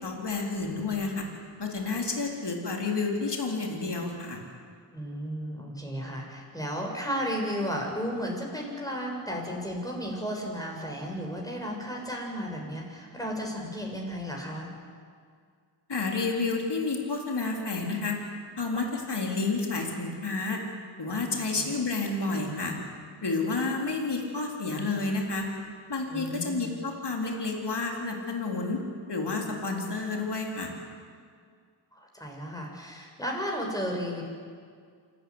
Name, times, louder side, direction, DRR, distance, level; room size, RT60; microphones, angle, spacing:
voice 1, 0.0-1.2 1.6-4.4 15.9-18.2 18.6-20.6 21.0-22.8 23.2-25.5 25.9-28.8 29.1-30.7, left 3 dB, 65° left, 0 dB, 3.9 m, -30 dB
voice 2, 4.9-14.7 21.5-21.6 26.1-26.7 31.9-34.2, equal, 10° left, 0 dB, 6.6 m, -34 dB
27.0 x 13.5 x 9.7 m, 2.1 s
cardioid pair, 50°, 43 cm